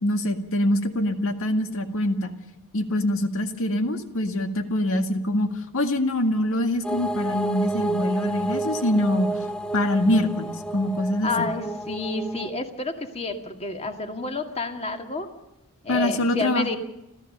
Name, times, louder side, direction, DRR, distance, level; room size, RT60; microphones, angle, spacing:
voice 1, 0.0-2.3 2.7-5.5 5.7-9.3 9.7-11.3 15.9-16.7, left 1 dB, 65° left, 6 dB, 2.0 m, -24 dB
sound 1, 6.8-12.5, right 2 dB, 5° left, 0.8 m, -30 dB
voice 2, 11.2-15.3 15.8-16.8, left 3 dB, 30° left, 5 dB, 2.2 m, -29 dB
30.0 x 13.0 x 6.8 m, 0.90 s
head